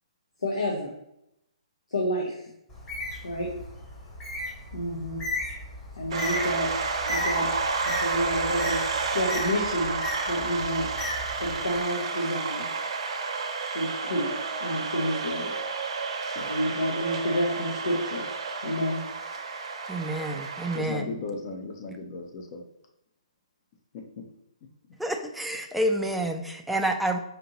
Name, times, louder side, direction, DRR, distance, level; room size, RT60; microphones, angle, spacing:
voice 1, 0.4-0.9 1.9-2.4 3.2-3.5 4.7-5.2 6.0-6.7 7.1-7.5 7.8-8.8 9.1-10.9 11.4-12.6 13.7-14.3 14.6-15.5 16.5-18.3 18.6-19.0, equal, 70° left, -2 dB, 0.8 m, -29 dB
Bird, 2.7-11.8, left 1 dB, 20° left, 1.1 m, -36 dB
sound 1, 6.1-20.8, right 4 dB, 50° right, 0.7 m, -31 dB
voice 2, 19.9-21.1 25.0-27.2, right 1 dB, ahead, 3 dB, 0.3 m, -28 dB
voice 3, 20.7-22.6 23.9-24.2, left 4 dB, 35° left, 3 dB, 0.6 m, -36 dB
5.1 x 2.8 x 2.9 m, 0.80 s
figure-of-eight pair, 130°, 4 cm